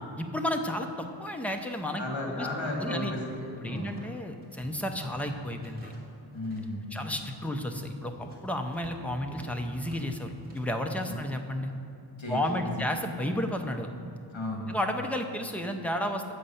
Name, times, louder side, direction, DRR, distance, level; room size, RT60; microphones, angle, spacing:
voice 1, 0.0-2.5 2.8-3.1 3.6-5.9 6.9-11.7 12.3-13.9 14.7-16.2, left 1 dB, 5° left, 4 dB, 0.3 m, -32 dB
voice 2, 2.0-3.9 6.3-7.0 11.0-11.1 12.2-12.9 14.3-14.7, left 1 dB, 70° left, -1 dB, 2.0 m, -34 dB
sound 1, 3.2-4.2 4.4-6.7 6.9-11.3, right 1 dB, 20° right, 1.5 m, -51 dB
7.8 x 6.1 x 5.5 m, 2.6 s
wide cardioid pair, 165°, 47 cm